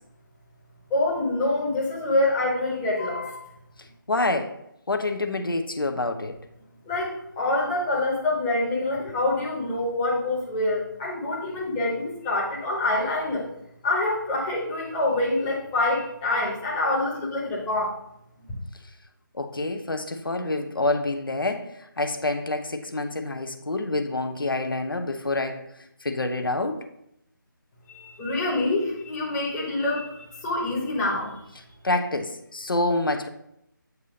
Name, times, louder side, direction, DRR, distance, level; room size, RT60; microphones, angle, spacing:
voice 1, 0.9-3.3 6.9-13.5 13.8-17.9 18.5-18.6 27.9-31.5, left 2 dB, 10° left, -5 dB, 0.9 m, -26 dB
voice 2, 4.1-4.6 4.9-6.4 9.0-9.1 19.3-25.7 26.0-26.9 31.8-33.3, left 2 dB, 85° left, 7 dB, 0.9 m, -27 dB
8.2 x 2.8 x 5.1 m, 0.79 s
figure-of-eight pair, 165°, 11 cm